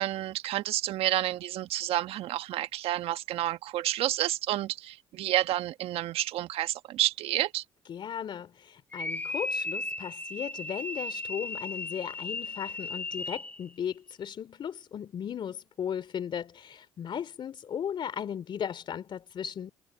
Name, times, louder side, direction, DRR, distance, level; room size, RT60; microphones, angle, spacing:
voice 1, 0.0-7.6, right 14 dB, 70° right, 1.3 m, -30 dB
voice 2, 7.9-19.7, left 8 dB, 55° left, 3.1 m, -36 dB
sound 1, 8.9-13.6, left 2 dB, 15° left, 1.3 m, -36 dB
supercardioid pair, 65°, 10 cm